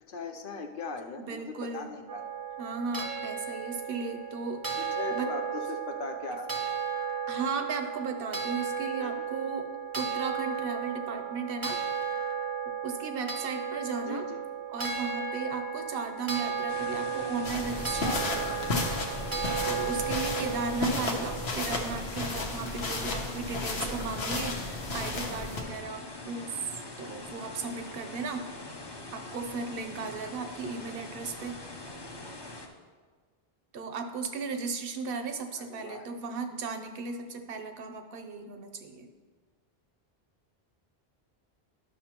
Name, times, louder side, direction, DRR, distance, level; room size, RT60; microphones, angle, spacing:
voice 1, 0.0-2.2 4.8-6.5 9.0-9.2 14.0-14.4 18.0-18.3 31.4-31.5 35.5-36.1, left 4 dB, 60° left, 4 dB, 0.8 m, -39 dB
voice 2, 1.2-2.0 2.6-4.6 5.1-5.3 7.3-11.8 12.8-14.2 14.7-19.3 19.6-26.6 27.0-28.5 29.1-31.6 33.7-39.1, right 4 dB, 65° right, 7 dB, 0.9 m, -36 dB
sound 1, 2.1-21.5, right 7 dB, 25° right, 0.5 m, -34 dB
sound 2, 16.7-32.7, left 2 dB, 25° left, 0.7 m, -43 dB
sound 3, 17.4-25.6, left 2 dB, 80° left, 1.2 m, -33 dB
11.5 x 6.1 x 2.9 m, 1.5 s
omnidirectional pair, 1.1 m